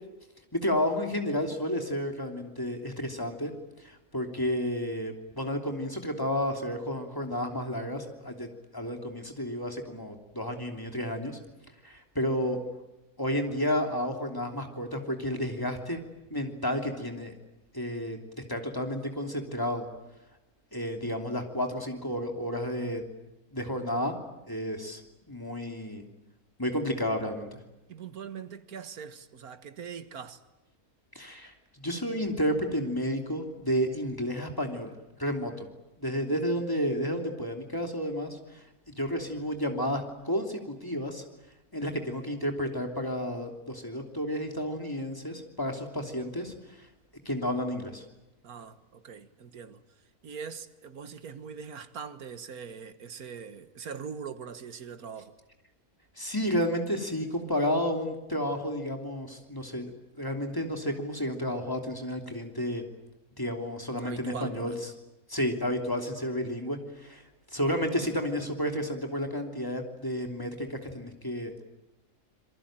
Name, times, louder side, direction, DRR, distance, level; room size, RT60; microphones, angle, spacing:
voice 1, 0.5-3.5 3.8-11.4 11.8-12.6 13.2-16.0 16.3-17.3 17.7-18.2 18.5-19.9 20.7-23.0 23.5-24.2 24.5-25.0 25.3-26.0 26.6-27.5 31.1-35.7 36.0-41.2 41.7-46.8 47.2-48.0 56.2-59.9 60.2-62.8 63.4-64.7 65.3-67.2 67.5-71.6, equal, 15° left, 3.0 m, -31 dB
voice 2, 27.9-30.4 48.4-49.8 50.2-55.4 64.0-64.9, right 6 dB, 80° right, 1.8 m, -42 dB
27.0 x 23.0 x 9.0 m
omnidirectional pair, 1.5 m